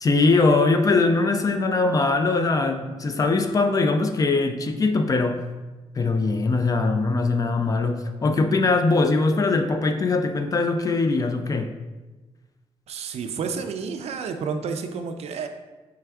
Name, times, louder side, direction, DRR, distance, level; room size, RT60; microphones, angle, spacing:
voice 1, 0.0-5.5 6.0-11.7, left 3 dB, 30° left, 7 dB, 0.4 m, -21 dB
voice 2, 12.9-15.5, right 5 dB, 65° right, 7 dB, 0.4 m, -30 dB
4.7 x 3.4 x 3.4 m, 1.2 s
cardioid pair, 130°, 11 cm